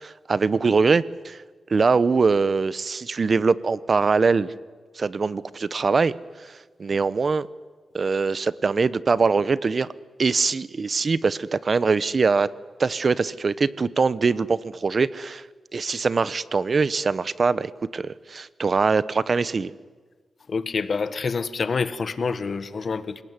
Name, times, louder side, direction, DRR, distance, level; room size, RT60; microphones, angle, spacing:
voice 1, 0.0-1.4 1.7-4.5 5.0-6.1 6.4-7.5 7.9-9.9 10.2-12.5 12.8-15.4 15.7-19.7, right 4 dB, 50° right, 18 dB, 0.9 m, -22 dB
voice 2, 20.5-23.2, left 5 dB, 55° left, 14 dB, 1.5 m, -27 dB
27.5 x 19.0 x 9.6 m, 1.5 s
cardioid pair, 75°, 0 cm